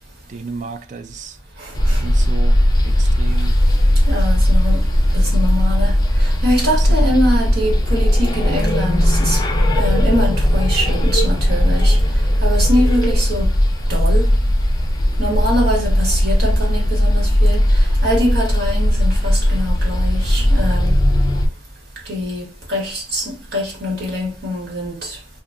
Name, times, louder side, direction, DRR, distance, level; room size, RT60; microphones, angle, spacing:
voice 1, 0.3-1.4 2.0-3.6 6.7-7.1, right 4 dB, 45° right, 0.4 m, -32 dB
voice 2, 1.6-2.0 4.1-4.8 5.1-9.4 9.7-12.0 12.4-13.5 13.9-14.3 15.2-21.0 22.0-25.2, equal, 65° right, 1.4 m, -23 dB
sound 1, 1.7-21.5, equal, 25° left, 0.5 m, -16 dB
2.9 x 2.2 x 3.5 m
head